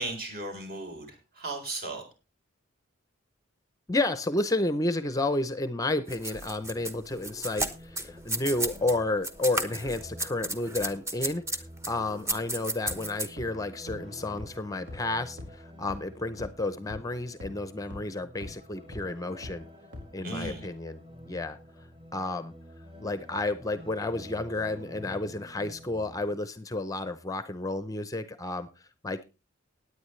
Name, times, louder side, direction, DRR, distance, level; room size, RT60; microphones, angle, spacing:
voice 1, 0.0-2.1 20.2-20.7, right 2 dB, 50° right, 3 dB, 4.0 m, -36 dB
voice 2, 3.9-19.6 20.1-21.0 21.2-21.6 22.1-22.5 23.0-28.7 29.0-29.2, left 2 dB, 15° left, 12 dB, 0.6 m, -31 dB
sound 1, 6.1-8.9 9.2-13.3, right 1 dB, 15° right, 1.0 m, -33 dB
sound 2, 6.6-26.4, equal, 30° right, 3.1 m, -49 dB
sound 3, 12.9-13.0 13.4-13.5 13.9-14.0 14.4-14.5 14.9-15.0 15.4-15.5 15.9-16.0 16.4-16.5 16.9-17.0 17.4-17.5 17.9-18.0 18.4-18.5 18.9-19.0 19.4-19.5 19.9-20.0 20.4-20.5, left 2 dB, 65° right, 4.7 m, -40 dB
17.0 x 9.6 x 3.2 m, 0.29 s
head